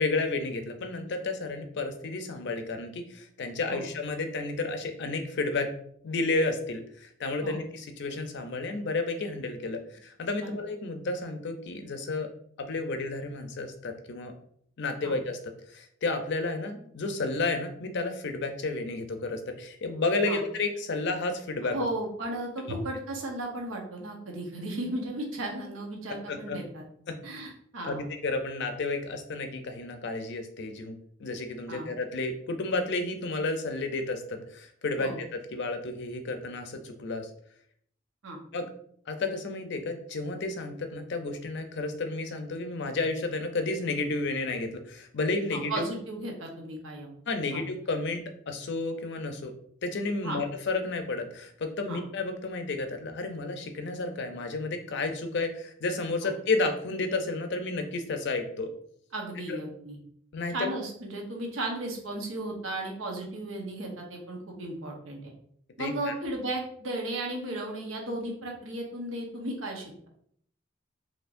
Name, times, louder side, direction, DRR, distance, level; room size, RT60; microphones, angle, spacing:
voice 1, 0.0-5.7 6.0-12.3 12.6-14.3 14.8-15.4 15.7-21.8 26.3-26.6 27.1-27.2 27.8-37.3 38.5-38.7 39.1-45.8 47.3-49.5 49.8-58.7 59.5-59.6 60.3-60.7 65.8-66.1, left 3 dB, 60° left, 6 dB, 0.5 m, -31 dB
voice 2, 21.7-26.8 27.2-28.0 31.7-31.9 35.0-35.2 38.2-38.4 45.5-47.2 47.5-47.6 50.2-50.4 51.9-52.0 56.2-56.3 59.1-60.0 60.5-65.3 65.8-70.1, right 1 dB, 85° right, 1 dB, 1.0 m, -35 dB
4.3 x 2.9 x 2.6 m, 0.65 s
head